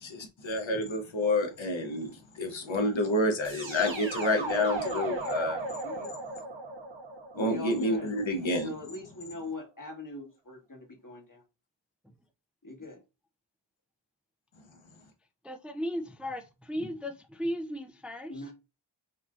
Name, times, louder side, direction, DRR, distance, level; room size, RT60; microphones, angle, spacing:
voice 1, 0.0-5.6 7.3-8.7, left 1 dB, 85° left, 0.9 m, -29 dB
sound 1, 3.4-8.4, right 2 dB, 75° right, 1.3 m, -36 dB
voice 2, 4.4-5.0 5.8-6.3 7.3-8.1 8.5-11.4 12.6-13.0 18.3-18.5, left 2 dB, 45° left, 1.5 m, -42 dB
voice 3, 15.4-18.3, equal, 5° right, 0.5 m, -35 dB
5.5 x 2.7 x 2.4 m
wide cardioid pair, 45°, 45 cm